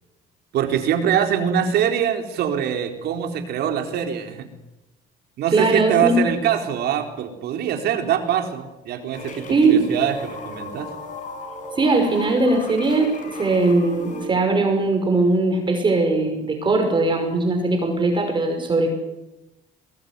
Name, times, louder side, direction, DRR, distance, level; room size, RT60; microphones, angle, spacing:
voice 1, 0.5-4.5 5.4-10.9, right 9 dB, 70° right, 5 dB, 4.2 m, -23 dB
voice 2, 5.5-6.2 9.5-9.8 11.8-19.0, right 3 dB, 30° right, 4 dB, 5.6 m, -20 dB
sound 1, 9.1-14.3, left 2 dB, 50° left, 7.3 m, -36 dB
22.0 x 20.5 x 9.7 m, 0.96 s
cardioid pair, 110°, 17 cm